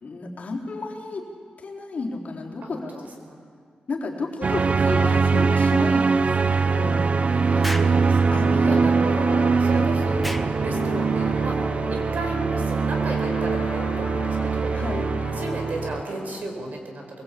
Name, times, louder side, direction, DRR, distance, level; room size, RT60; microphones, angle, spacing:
voice 1, 0.0-1.2 1.6-3.1 3.9-7.1 8.3-9.0 9.7-10.0 14.7-15.0, left 3 dB, 55° left, -1 dB, 3.8 m, -32 dB
sound 1, 4.4-16.0, right 4 dB, 45° right, 0.6 m, -22 dB
sound 2, 7.1-16.4, left 6 dB, 90° left, 1.7 m, -37 dB
voice 2, 7.5-8.3 8.6-14.7 15.3-17.0, right 2 dB, 65° right, 3 dB, 4.7 m, -34 dB
Explosion, 7.6-8.0 10.2-10.5, equal, ahead, 1.2 m, -31 dB
23.5 x 21.5 x 8.5 m, 2.1 s
wide cardioid pair, 125°, 3 cm